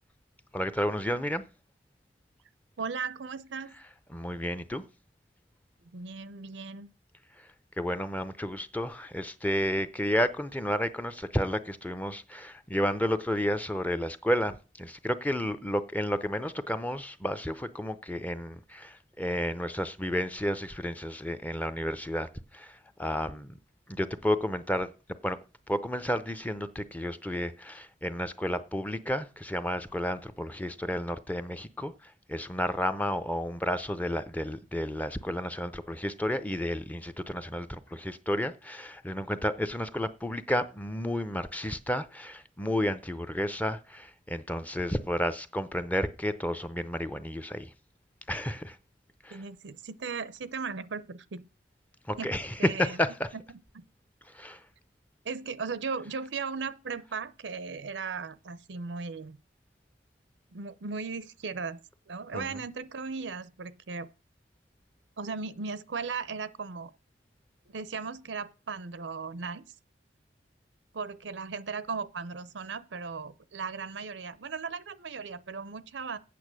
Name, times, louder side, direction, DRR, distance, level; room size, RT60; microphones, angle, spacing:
voice 1, 0.5-1.4 4.1-4.8 7.8-23.6 23.9-24.9 25.2-25.4 25.7-47.7 48.3-48.8 49.2-49.4 52.1-53.3 54.3-54.6 62.3-62.6, equal, 10° left, 0.6 m, -31 dB
voice 2, 2.8-3.7 5.9-6.9 49.3-51.4 52.2-52.3 52.6-53.0 53.3-53.4 53.7-53.8 55.2-59.4 60.5-61.8 62.1-64.1 65.2-66.9 67.7-69.6 70.9-76.2, right 5 dB, 90° right, 0.6 m, -37 dB
8.6 x 6.9 x 6.2 m
head